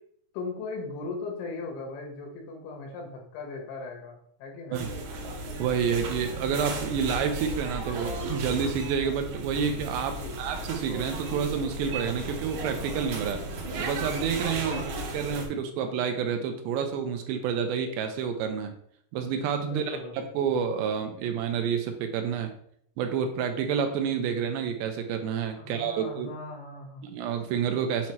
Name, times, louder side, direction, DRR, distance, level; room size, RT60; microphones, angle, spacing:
voice 1, 0.3-4.8 10.1-10.4 14.6-14.9 19.6-20.1 25.6-27.1, left 3 dB, 90° left, 0 dB, 3.8 m, -38 dB
sound 1, 4.7-15.5, right 1 dB, 65° right, 1.9 m, -35 dB
voice 2, 5.6-13.4 13.8-18.7 19.1-22.5 23.0-26.3 27.0-28.1, right 7 dB, 80° right, 6 dB, 2.8 m, -29 dB
8.2 x 3.0 x 4.5 m, 0.66 s
omnidirectional pair, 5.1 m